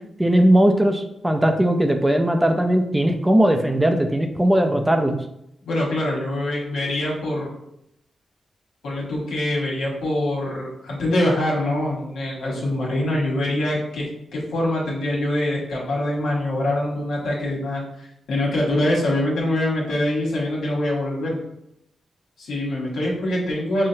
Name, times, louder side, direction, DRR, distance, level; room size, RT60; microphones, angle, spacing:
voice 1, 0.2-5.2, right 1 dB, 15° right, 5 dB, 0.4 m, -18 dB
voice 2, 5.6-7.5 8.8-21.4 22.4-23.9, left 1 dB, 90° left, -4 dB, 1.3 m, -24 dB
5.5 x 2.0 x 2.7 m, 0.79 s
cardioid pair, 70°, 0 cm